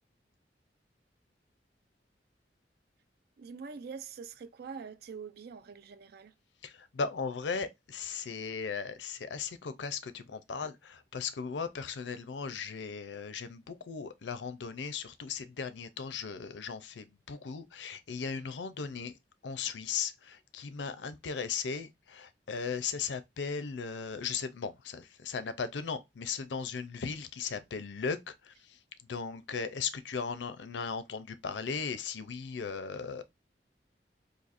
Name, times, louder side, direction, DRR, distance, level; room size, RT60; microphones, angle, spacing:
voice 1, 3.4-6.3, right 5 dB, 60° right, 0.4 m, -44 dB
voice 2, 6.6-19.1 19.4-28.5 29.1-33.2, left 5 dB, 85° left, 0.5 m, -37 dB
4.2 x 2.7 x 2.5 m
head